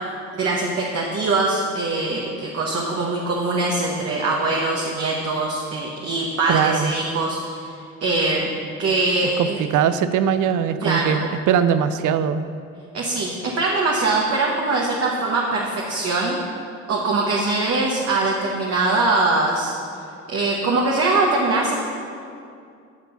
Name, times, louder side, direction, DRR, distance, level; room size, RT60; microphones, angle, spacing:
voice 1, 0.3-7.7 8.0-8.5 8.8-9.6 10.8-11.2 12.9-16.4 16.9-19.7 20.3-21.8, right 3 dB, 55° right, -2 dB, 1.3 m, -22 dB
voice 2, 6.5-6.9 9.4-12.4, right 8 dB, 80° right, 12 dB, 0.6 m, -21 dB
11.5 x 6.1 x 5.8 m, 2.4 s
cardioid pair, 90°, 30 cm